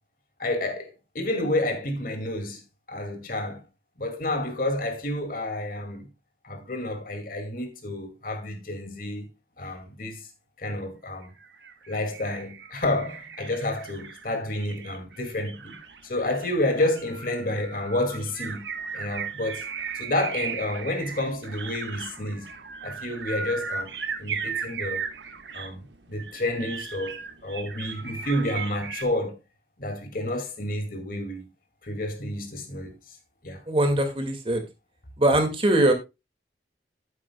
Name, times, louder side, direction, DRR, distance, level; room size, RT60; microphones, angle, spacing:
voice 1, 0.4-2.6 2.9-3.6 4.0-6.1 6.4-9.3 9.6-10.3 10.6-11.3 11.9-15.8 16.0-18.7 18.9-19.7 19.9-22.5 22.8-23.9 24.2-25.1 25.5-29.4 29.8-31.4 31.8-32.9 33.4-33.6, left 1 dB, 55° left, 2.3 m, -30 dB
sound 1, 11.2-29.0, right 6 dB, 85° right, 1.3 m, -37 dB
voice 2, 33.7-34.6 35.2-35.9, right 1 dB, 30° right, 2.1 m, -21 dB
12.5 x 9.3 x 2.3 m
head